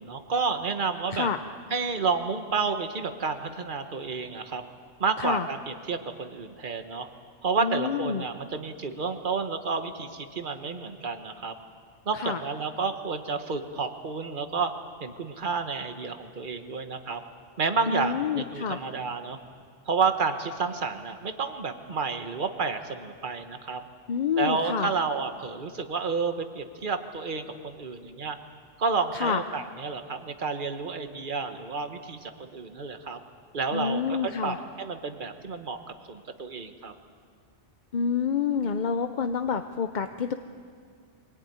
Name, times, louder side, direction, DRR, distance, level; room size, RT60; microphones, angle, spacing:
voice 1, 0.0-1.3 1.7-4.6 5.0-7.1 7.4-11.5 12.0-14.7 15.0-17.2 17.6-19.4 19.9-23.8 24.4-28.4 28.8-33.2 33.5-35.8 36.1-36.9, right 4 dB, 45° right, 7 dB, 1.4 m, -30 dB
voice 2, 7.6-8.2 12.1-12.4 17.9-18.8 24.1-24.9 29.1-29.4 33.7-34.6 37.9-40.3, left 6 dB, 45° left, 8 dB, 0.7 m, -28 dB
24.0 x 18.5 x 9.5 m, 2.1 s
omnidirectional pair, 1.2 m